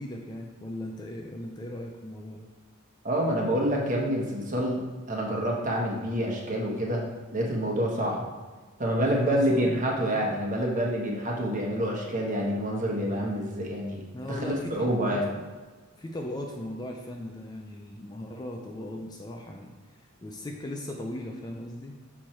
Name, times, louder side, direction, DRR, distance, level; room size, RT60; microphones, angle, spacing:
voice 1, 0.0-2.5 9.2-9.8 10.1-10.4 14.1-15.4 15.9-22.0, left 1 dB, 20° left, 2 dB, 0.4 m, -38 dB
voice 2, 3.0-7.1 7.3-8.2 8.8-14.4 14.7-15.3, equal, 35° right, -2 dB, 1.2 m, -27 dB
6.4 x 4.5 x 4.4 m, 1.4 s
head